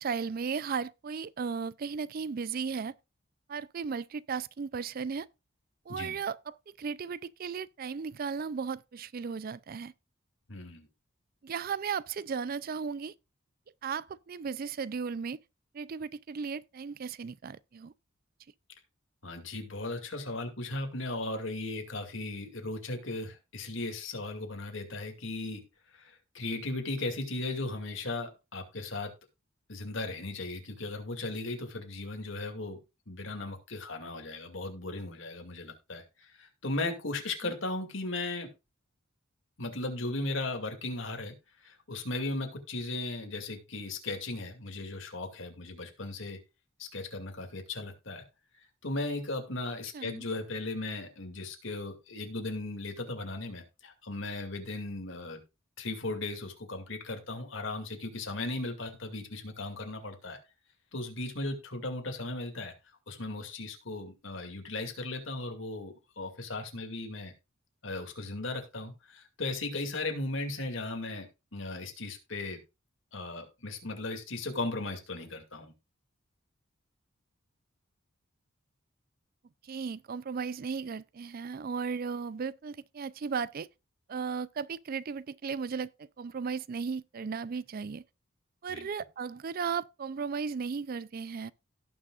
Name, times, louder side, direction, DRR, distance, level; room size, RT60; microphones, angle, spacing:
voice 1, 0.0-2.9 3.5-5.3 5.9-9.9 11.4-13.1 13.8-15.4 15.7-17.9 37.4-37.5 49.9-50.3 79.6-83.7 84.1-88.0 88.6-91.5, right 5 dB, 45° right, 0.4 m, -35 dB
voice 2, 10.5-10.9 19.2-25.6 25.9-29.1 29.7-32.8 33.1-38.5 39.6-41.3 41.6-46.4 46.8-48.2 48.8-55.4 55.8-60.4 60.9-62.7 63.1-67.3 67.8-71.3 71.5-72.6 73.1-75.7 88.7-88.9, left 2 dB, 65° left, 2.4 m, -37 dB
17.0 x 6.3 x 2.4 m
head